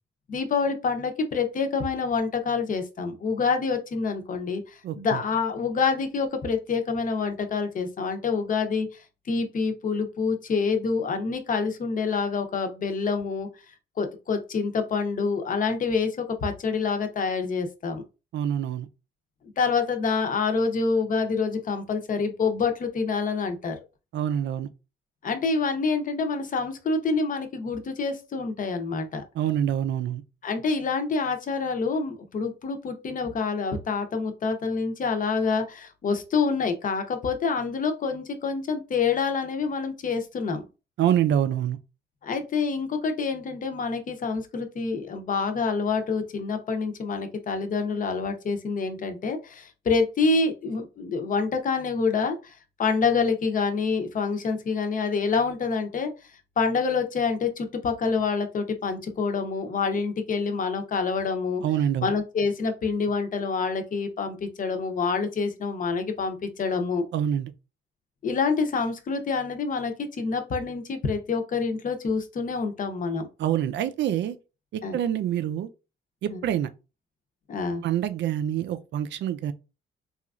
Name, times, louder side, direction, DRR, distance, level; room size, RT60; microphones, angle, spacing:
voice 1, 0.3-8.9 9.3-13.5 14.0-16.1 16.4-18.0 19.6-23.8 25.2-29.2 30.4-40.6 42.2-52.5 52.8-56.1 56.6-61.6 62.0-67.1 68.2-73.3 74.8-75.0 76.3-76.4 77.5-77.8, left 4 dB, 45° left, 0.6 m, -27 dB
voice 2, 4.8-5.2 18.3-18.9 24.1-24.7 29.3-30.2 41.0-41.8 61.6-62.1 67.1-67.5 73.4-74.4 74.7-75.7 76.2-76.7 77.8-79.5, right 10 dB, 65° right, 0.4 m, -26 dB
3.0 x 2.4 x 2.4 m
cardioid pair, 90°, 20 cm